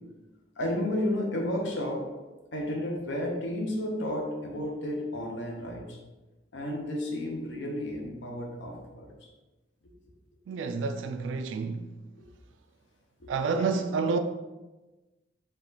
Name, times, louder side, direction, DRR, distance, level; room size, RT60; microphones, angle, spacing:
voice 1, 0.6-2.1 2.5-6.0 6.5-9.3 13.2-13.8, left 1 dB, 75° left, 0.8 m, -32 dB
voice 2, 10.5-11.8 13.3-14.2, right 4 dB, 80° right, 0.3 m, -29 dB
4.5 x 2.4 x 3.9 m
head